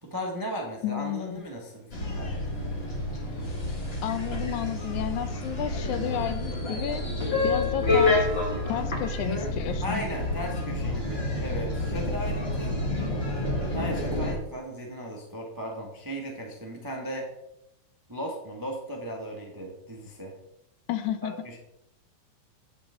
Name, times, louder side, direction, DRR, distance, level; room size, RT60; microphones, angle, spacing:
voice 1, 0.0-2.5 9.8-12.7 13.7-17.3 18.1-20.3 21.2-21.6, equal, 25° right, 0 dB, 0.4 m, -36 dB
voice 2, 0.8-1.3 4.0-7.1 7.4-8.3 8.7-10.0 20.9-21.3, left 10 dB, 85° left, 10 dB, 2.2 m, -31 dB
sound 1, 1.9-14.3, left 2 dB, 30° left, 1.1 m, -29 dB
8.9 x 8.3 x 3.6 m, 0.84 s
omnidirectional pair, 3.4 m